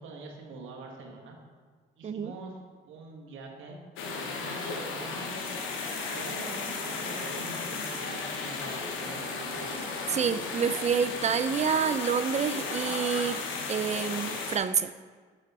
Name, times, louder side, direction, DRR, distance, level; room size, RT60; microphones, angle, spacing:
voice 1, 0.0-1.4 2.0-2.6 2.9-3.8 4.1-5.5 6.1-9.8, right 3 dB, 80° right, 1 dB, 1.3 m, -44 dB
sound 1, 4.0-14.6, left 4 dB, 85° left, 1.0 m, -34 dB
voice 2, 10.1-13.4 13.7-14.9, right 7 dB, 35° right, 13 dB, 0.4 m, -28 dB
8.2 x 5.4 x 4.0 m, 1.5 s
cardioid pair, 90°, 20 cm